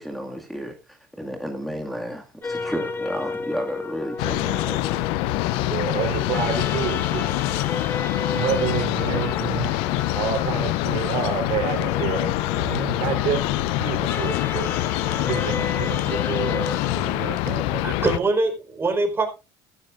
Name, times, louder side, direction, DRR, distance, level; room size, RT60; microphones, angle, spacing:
voice 1, 0.0-5.0 5.5-5.6 9.1-9.2, equal, ahead, 2 dB, 2.1 m, -33 dB
sound 1, 2.4-17.4, left 3 dB, 20° left, 1.7 m, -33 dB
sound 2, 4.2-18.2, left 17 dB, 75° left, 0.6 m, -25 dB
voice 2, 5.7-7.3 8.2-9.8 10.1-14.7 15.2-18.2, right 8 dB, 60° right, 6 dB, 4.0 m, -29 dB
voice 3, 17.7-19.3, right 3 dB, 25° right, 5 dB, 4.6 m, -23 dB
15.0 x 13.0 x 2.5 m, 0.29 s
supercardioid pair, 95°, 10 cm